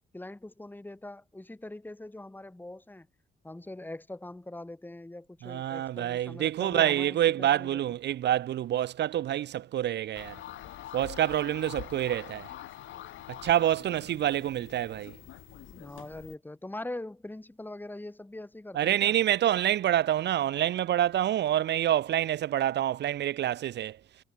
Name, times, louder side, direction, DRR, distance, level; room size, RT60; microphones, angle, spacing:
voice 1, 0.1-3.1 3.4-8.0 15.7-19.2, left 1 dB, 10° left, 2.3 m, -42 dB
voice 2, 5.4-10.3 10.9-12.5 13.3-15.1 18.7-24.0, right 12 dB, 60° right, 0.6 m, -27 dB
sound 1, 10.1-16.4, left 13 dB, 75° left, 2.8 m, -45 dB
cardioid pair, 90°, 20 cm